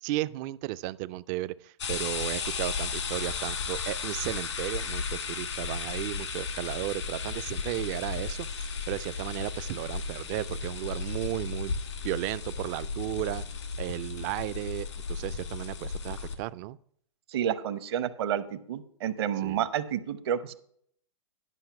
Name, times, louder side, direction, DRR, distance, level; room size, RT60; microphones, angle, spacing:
voice 1, 0.0-11.7 12.0-13.4 13.8-16.8 19.4-19.7, right 16 dB, 40° right, 18 dB, 0.4 m, -34 dB
sound 1, 1.8-16.3, left 5 dB, 80° left, 1.8 m, -35 dB
voice 2, 17.3-20.5, right 10 dB, 60° right, 13 dB, 0.8 m, -30 dB
11.0 x 5.7 x 5.7 m, 0.65 s
hypercardioid pair, 110°, 15 cm